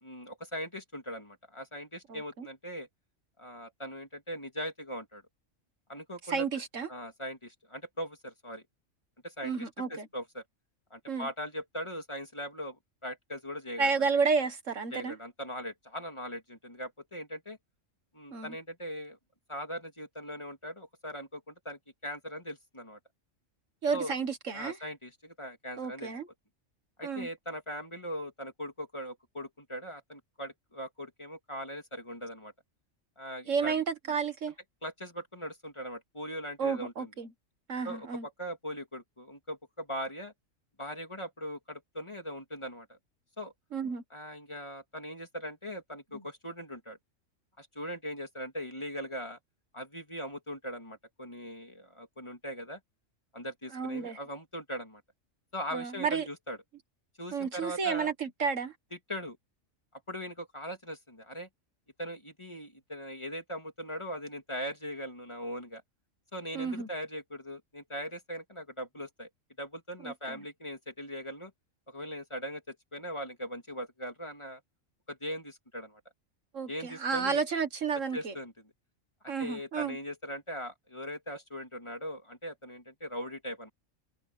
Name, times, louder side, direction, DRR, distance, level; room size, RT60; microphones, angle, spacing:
voice 1, 0.0-2.9 3.4-5.2 5.9-6.5 6.9-8.6 9.2-10.4 10.9-13.9 14.9-17.6 18.1-19.2 19.5-23.0 23.9-24.1 24.5-26.1 27.0-32.5 33.2-33.8 34.8-37.1 37.8-40.3 40.8-43.0 43.4-43.5 44.1-47.0 47.6-49.4 49.7-52.8 53.3-55.0 55.5-56.6 57.2-58.1 58.9-59.4 60.1-61.5 62.0-65.8 66.3-69.3 69.6-71.5 71.9-74.6 75.1-76.0 76.7-77.4 78.1-78.5 79.4-83.7, equal, 20° left, 2.9 m, -40 dB
voice 2, 2.1-2.5 6.3-6.9 9.4-10.1 11.1-11.3 13.8-15.2 18.3-18.6 23.8-24.8 25.8-26.3 27.0-27.3 33.5-34.5 36.6-37.3 37.7-38.3 43.7-44.0 53.7-54.2 55.7-56.3 57.3-58.7 66.5-66.9 70.0-70.4 76.5-78.3 79.3-80.0, right 5 dB, 70° right, 1.9 m, -31 dB
omnidirectional pair, 1.4 m